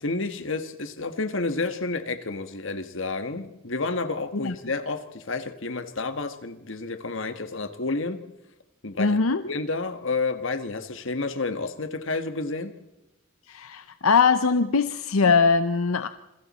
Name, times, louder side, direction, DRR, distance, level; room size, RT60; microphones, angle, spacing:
voice 1, 0.0-8.2 8.8-9.2 9.4-12.7, left 3 dB, 60° left, 9 dB, 1.5 m, -30 dB
voice 2, 9.0-9.4 13.5-16.1, left 5 dB, 85° left, 11 dB, 0.8 m, -21 dB
27.5 x 22.0 x 4.3 m, 0.96 s
head